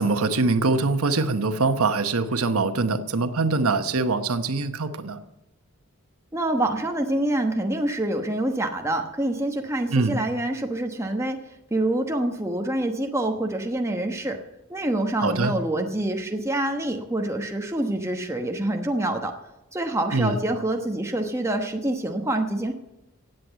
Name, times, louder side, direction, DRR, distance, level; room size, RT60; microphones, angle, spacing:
voice 1, 0.0-5.2 9.9-10.2 15.2-15.5 20.1-20.4, right 3 dB, 85° right, 9 dB, 1.0 m, -23 dB
voice 2, 6.3-11.4 11.7-14.4 14.7-19.3 19.7-22.7, right 1 dB, 10° right, 3 dB, 1.1 m, -26 dB
17.0 x 7.9 x 8.1 m, 0.94 s
head